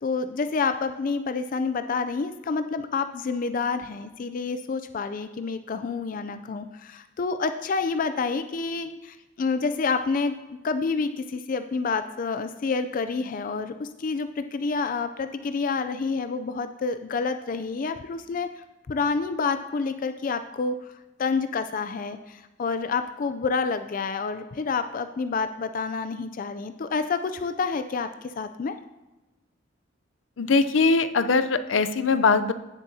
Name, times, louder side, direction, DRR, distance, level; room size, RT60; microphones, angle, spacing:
voice 1, 0.0-18.5 18.9-20.9 21.2-28.7, left 4 dB, 45° left, 9 dB, 0.4 m, -28 dB
voice 2, 30.4-32.5, left 4 dB, 90° left, 12 dB, 0.6 m, -21 dB
16.5 x 7.4 x 2.8 m, 1.1 s
head